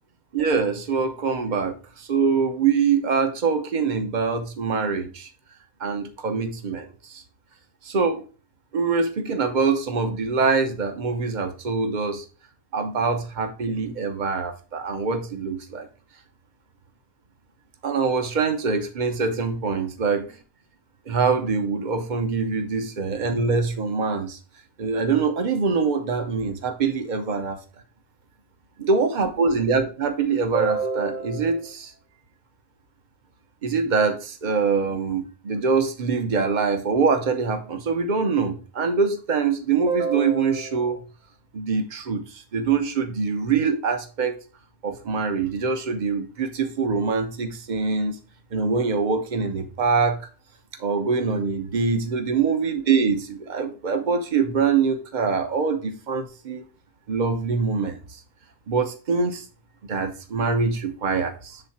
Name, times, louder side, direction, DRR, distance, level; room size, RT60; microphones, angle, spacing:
voice 1, 0.3-5.3 5.8-7.2 7.8-8.3 8.7-12.2 12.7-15.9 17.8-20.3 21.1-24.4 24.8-27.6 28.8-31.9 33.6-41.0 41.5-44.3 44.8-48.2 48.5-50.3 50.8-56.6 57.1-58.0 58.7-59.5 59.9-61.6, right 5 dB, 45° right, 0.9 m, -24 dB
7.9 x 3.7 x 4.2 m
omnidirectional pair, 1.2 m